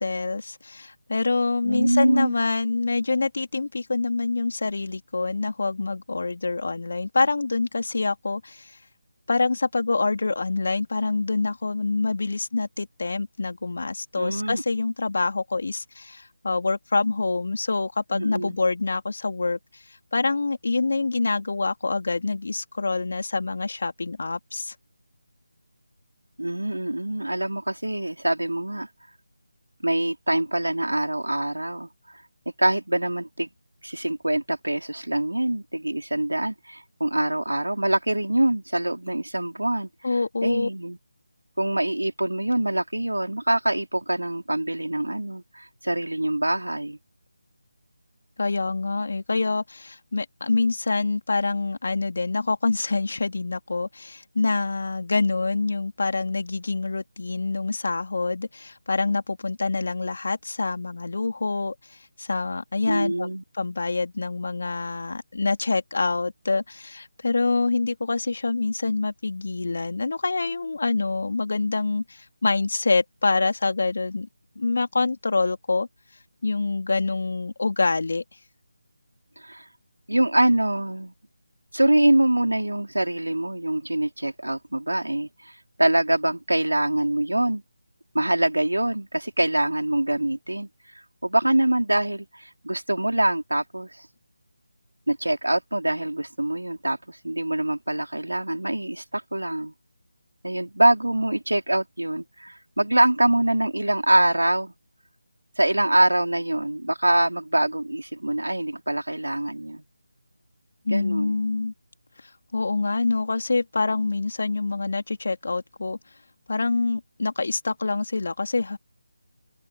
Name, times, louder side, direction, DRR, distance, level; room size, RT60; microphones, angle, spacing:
voice 1, 0.0-8.7 9.3-19.6 20.1-24.7 40.0-40.7 48.4-63.3 63.6-74.3 74.6-75.9 76.4-78.2 110.9-111.7 112.5-116.0 116.5-118.8, left 3 dB, 55° left, 3.4 m, -26 dB
voice 2, 1.6-2.4 14.1-14.6 18.1-18.6 26.4-28.9 29.8-31.9 32.6-33.5 33.8-39.9 40.4-41.0 41.6-47.0 62.9-63.4 79.4-79.6 80.1-81.1 81.7-87.6 88.1-90.7 91.2-94.1 95.1-99.7 100.4-104.7 105.6-109.8 110.9-111.4, right 1 dB, 80° right, 4.8 m, -24 dB
figure-of-eight pair, 160°, 0 cm